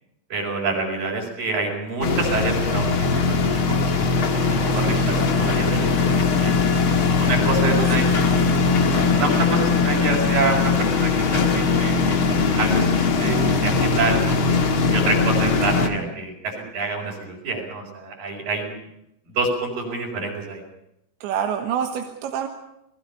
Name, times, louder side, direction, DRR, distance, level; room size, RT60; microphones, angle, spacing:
voice 1, 0.3-6.8 7.2-8.1 9.1-14.3 14.9-18.8 19.3-20.6, right 3 dB, 45° right, 2 dB, 6.0 m, -27 dB
sound 1, 2.0-15.9, left 4 dB, 80° left, 1.1 m, -20 dB
voice 2, 4.7-5.0 7.7-8.1 21.2-22.5, right 8 dB, 70° right, 4 dB, 3.4 m, -27 dB
29.5 x 20.0 x 5.7 m, 0.82 s
omnidirectional pair, 5.8 m